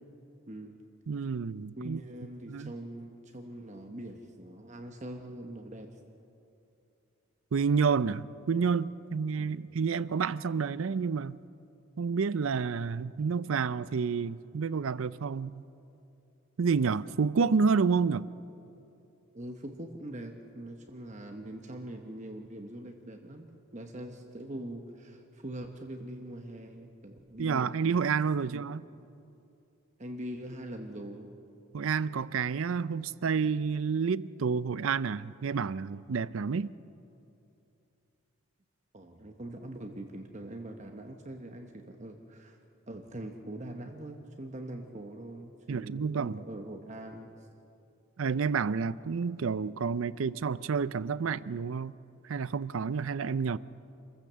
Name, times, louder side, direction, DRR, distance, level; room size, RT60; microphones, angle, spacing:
voice 1, 0.5-0.8 1.8-5.9 9.4-9.6 19.3-23.5 23.7-28.1 28.4-28.6 30.0-31.3 38.9-42.6 42.9-47.3, right 1 dB, 35° right, 1.1 m, -43 dB
voice 2, 1.1-2.0 2.5-2.7 7.5-11.4 12.0-15.6 16.6-18.3 27.4-28.8 31.7-36.7 45.7-46.4 48.2-51.9 52.3-53.6, right 5 dB, 70° right, 0.5 m, -29 dB
26.5 x 15.0 x 6.8 m
head